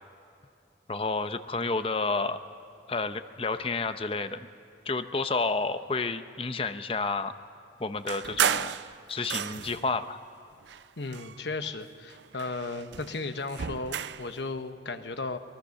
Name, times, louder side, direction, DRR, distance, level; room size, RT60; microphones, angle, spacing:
voice 1, 0.9-2.4 2.9-4.5 4.9-7.3 7.8-8.7 9.1-10.2, left 3 dB, 30° left, 10 dB, 0.7 m, -30 dB
sound 1, 8.1-9.9 10.6-11.8 12.1-14.3, right 9 dB, 90° right, 0.5 m, -33 dB
voice 2, 11.0-15.4, left 3 dB, 80° left, 8 dB, 1.1 m, -35 dB
23.5 x 19.5 x 6.5 m, 2.7 s
head